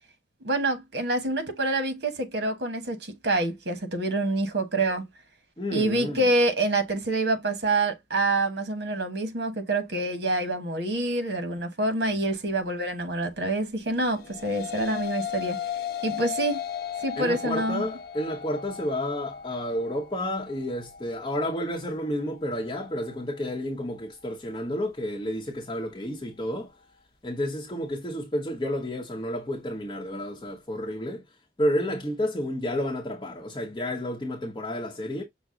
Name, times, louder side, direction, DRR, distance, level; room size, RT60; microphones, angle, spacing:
voice 1, 0.4-5.0 5.7-15.6 16.0-16.6 17.0-17.9, right 2 dB, 75° right, 1.1 m, -27 dB
voice 2, 5.6-6.2 17.2-26.7 27.2-31.2 31.6-35.2, equal, 25° left, 0.8 m, -30 dB
sound 1, 14.0-23.1, left 9 dB, 55° left, 0.7 m, -36 dB
6.0 x 2.0 x 3.6 m
head